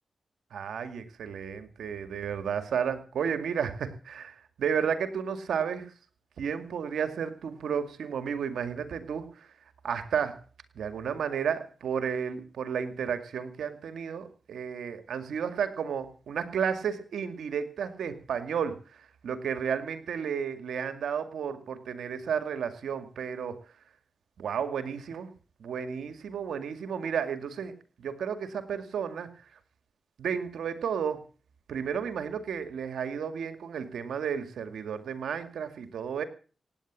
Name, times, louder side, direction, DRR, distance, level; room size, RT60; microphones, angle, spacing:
voice 1, 0.5-5.9 6.4-9.5 9.8-10.4 10.8-23.6 24.4-25.3 25.6-29.3 30.2-31.2 31.7-36.2, right 7 dB, 90° right, 10 dB, 2.1 m, -32 dB
17.5 x 9.4 x 7.5 m, 0.40 s
cardioid pair, 55°, 0 cm